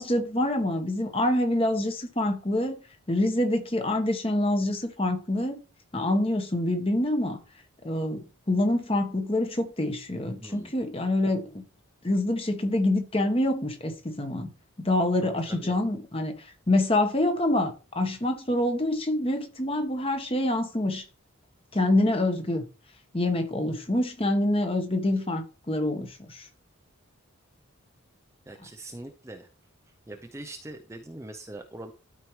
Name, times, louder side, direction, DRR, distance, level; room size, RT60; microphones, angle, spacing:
voice 1, 0.0-2.7 3.1-5.6 5.9-7.4 7.8-11.6 12.0-14.5 14.8-21.0 21.7-22.6 23.1-26.5, left 1 dB, 25° left, 1.1 m, -26 dB
voice 2, 10.3-10.7 15.2-15.7 28.5-29.5 30.1-31.9, right 1 dB, 15° right, 0.5 m, -42 dB
12.5 x 4.5 x 3.1 m
head